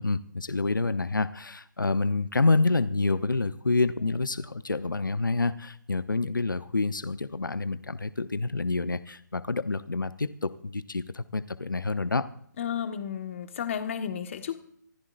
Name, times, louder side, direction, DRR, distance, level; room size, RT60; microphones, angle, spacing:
voice 1, 0.0-12.3, left 3 dB, 90° left, 12 dB, 0.9 m, -28 dB
voice 2, 12.6-14.6, left 8 dB, 40° left, 8 dB, 1.5 m, -32 dB
26.0 x 13.5 x 2.6 m, 0.67 s
figure-of-eight pair, 150°, 10 cm